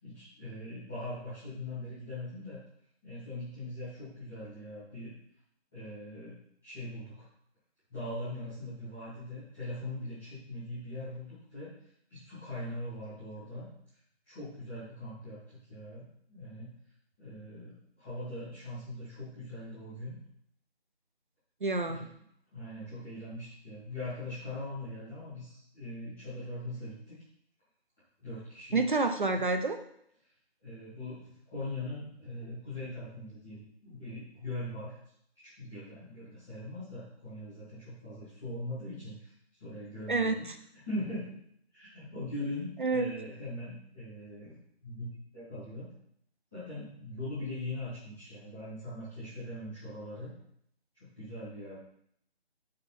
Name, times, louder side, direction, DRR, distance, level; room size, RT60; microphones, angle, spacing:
voice 1, 0.0-2.6 3.0-5.1 5.7-6.4 6.6-7.3 7.9-11.7 12.1-13.7 14.2-16.7 17.2-20.2 21.8-22.1 22.5-27.2 28.2-28.8 29.3-29.4 30.6-35.0 35.4-39.3 39.6-40.4 40.8-41.4 41.7-44.5 44.8-45.9 46.5-50.3 50.9-51.8, left 1 dB, ahead, -21 dB, 0.8 m, -41 dB
voice 2, 21.6-22.0 28.7-29.8 40.1-40.3 42.8-43.1, right 3 dB, 50° right, 6 dB, 0.7 m, -28 dB
6.6 x 5.5 x 4.1 m, 0.69 s
figure-of-eight pair, 160°, 33 cm